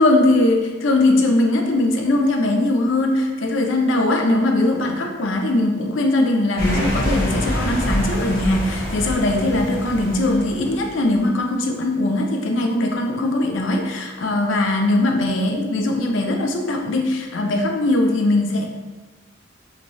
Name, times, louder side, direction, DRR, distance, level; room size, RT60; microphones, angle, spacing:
voice 1, 0.0-18.7, left 2 dB, 70° left, 2 dB, 0.4 m, -20 dB
sound 1, 6.6-11.1, equal, 45° left, 0.8 m, -26 dB
2.8 x 2.6 x 3.0 m, 1.2 s
head